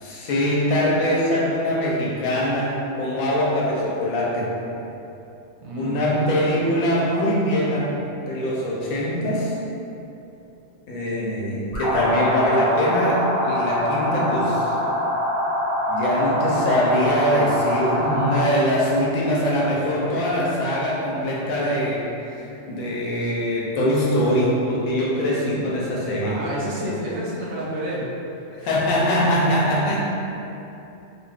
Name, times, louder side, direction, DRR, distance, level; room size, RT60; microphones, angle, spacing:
voice 1, 0.0-4.5 5.7-9.5 10.9-14.7 15.9-26.4 28.6-30.0, equal, 90° left, -4 dB, 1.1 m, -23 dB
voice 2, 5.6-6.3 18.0-18.5 26.2-28.0 29.1-29.2 29.9-30.0, equal, 85° right, -5 dB, 1.1 m, -28 dB
sound 1, 11.7-18.5, left 1 dB, 60° left, 1.9 m, -24 dB
4.0 x 2.4 x 2.2 m, 2.9 s
omnidirectional pair, 1.4 m